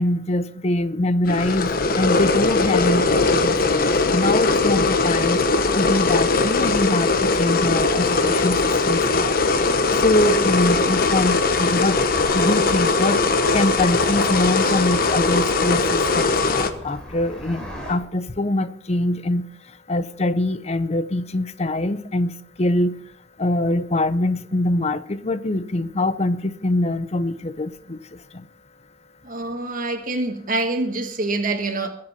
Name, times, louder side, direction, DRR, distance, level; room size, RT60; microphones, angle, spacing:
voice 1, 0.0-5.4 5.7-9.4 9.9-12.0 12.3-23.0 23.4-28.5, left 1 dB, 40° left, 0.8 m, -24 dB
sound 1, 1.3-16.7, left 3 dB, 55° left, 1.1 m, -20 dB
sound 2, 7.9-17.9, equal, 5° left, 4.8 m, -36 dB
voice 2, 29.2-31.9, right 2 dB, 50° right, 1.5 m, -25 dB
22.0 x 7.8 x 5.8 m
head